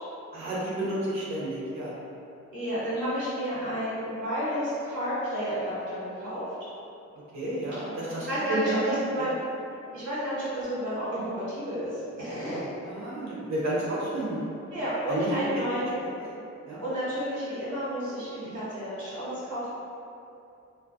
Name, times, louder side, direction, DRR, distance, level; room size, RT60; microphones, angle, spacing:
voice 1, 0.3-2.0 3.6-3.7 7.3-9.3 11.2-11.3 12.8-14.4 15.1-15.5 16.7-16.8 18.4-18.6, right 1 dB, 70° right, -6 dB, 0.8 m, -31 dB
voice 2, 2.5-6.4 8.2-9.4 9.9-12.6 14.7-15.9 16.8-19.7, equal, 90° right, -11 dB, 1.4 m, -31 dB
2.5 x 2.1 x 2.4 m, 2.7 s
cardioid pair, 95°, 29 cm